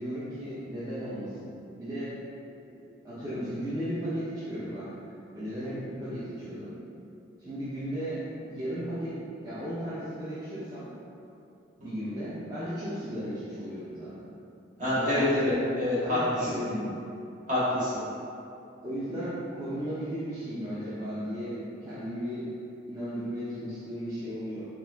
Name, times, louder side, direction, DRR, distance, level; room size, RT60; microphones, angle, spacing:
voice 1, 0.0-2.2 2.6-4.9 5.3-6.8 7.4-10.9 11.8-14.3 14.8-15.6 16.0-17.0 18.8-22.5 22.8-24.7, equal, 20° right, -12 dB, 0.7 m, -35 dB
voice 2, 14.8-16.5 17.5-18.0, left 1 dB, 45° right, -10 dB, 1.4 m, -26 dB
4.8 x 2.5 x 3.5 m, 2.6 s
head